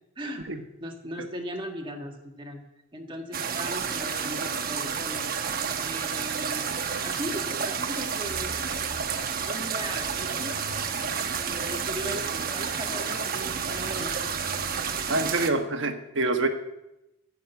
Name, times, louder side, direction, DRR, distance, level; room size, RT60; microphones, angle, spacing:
voice 1, 0.2-0.5 0.8-2.6 2.9-5.3 5.8-8.6 9.4-10.7 11.3-14.3, equal, 25° right, 2 dB, 1.8 m, -38 dB
sound 1, 3.3-15.5, right 6 dB, 45° right, 1.0 m, -30 dB
sound 2, 8.2-9.6 10.0-12.8 13.4-15.1, left 1 dB, 5° left, 2.8 m, -45 dB
voice 2, 15.1-16.5, right 2 dB, 60° right, 7 dB, 1.3 m, -26 dB
14.5 x 7.3 x 8.1 m, 0.92 s
head